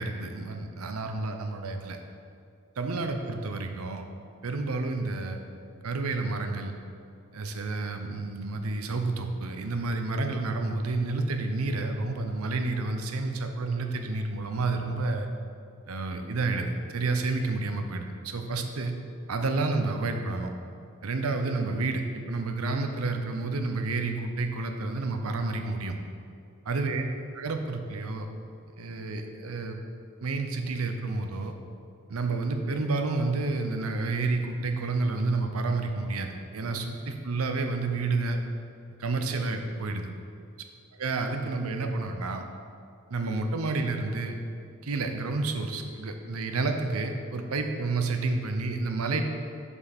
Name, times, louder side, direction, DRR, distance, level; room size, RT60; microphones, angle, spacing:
voice 1, 0.0-2.0 2.8-4.0 4.4-5.4 5.8-6.7 7.3-15.3 15.9-19.0 19.3-20.5 21.0-25.9 26.7-27.0 27.3-28.3 28.8-29.8 30.2-31.5 32.1-38.4 39.0-40.1 41.0-42.4 43.1-44.4 44.8-49.2, right 3 dB, 80° right, 5 dB, 0.7 m, -30 dB
7.1 x 5.5 x 4.2 m, 2.4 s
head